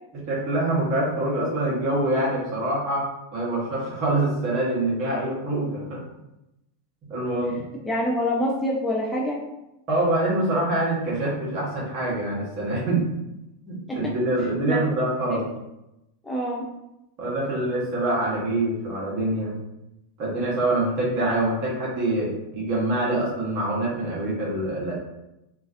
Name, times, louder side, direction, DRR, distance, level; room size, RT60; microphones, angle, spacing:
voice 1, 0.3-3.0 3.3-6.0 7.1-7.6 9.9-13.1 13.6-15.5 17.2-19.5 20.2-24.9, right 1 dB, 40° right, -5 dB, 1.2 m, -25 dB
voice 2, 7.9-9.4 13.9-14.0 14.7-14.8 15.2-15.4 16.2-16.6, equal, 10° left, -3 dB, 0.4 m, -26 dB
3.0 x 2.4 x 2.5 m, 0.92 s
figure-of-eight pair, 90°, 0 cm